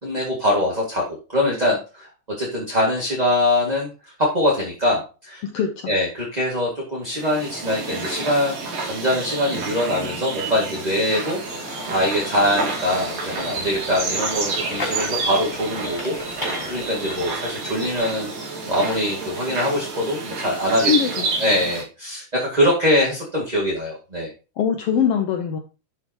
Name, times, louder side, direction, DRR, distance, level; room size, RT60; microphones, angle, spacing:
voice 1, 0.0-2.1 2.4-5.4 5.9-8.6 8.8-11.4 11.9-16.4 16.7-18.3 18.7-20.9 21.4-24.3, left 1 dB, 15° right, -4 dB, 1.7 m, -23 dB
voice 2, 5.4-5.9 20.9-21.2 24.6-25.6, left 7 dB, 80° left, 5 dB, 1.3 m, -22 dB
sound 1, 7.1-21.8, right 4 dB, 85° right, 4.5 m, -29 dB
sound 2, 11.4-18.0, left 2 dB, 15° left, 3.5 m, -36 dB
11.5 x 6.0 x 3.0 m, 0.32 s
omnidirectional pair, 3.8 m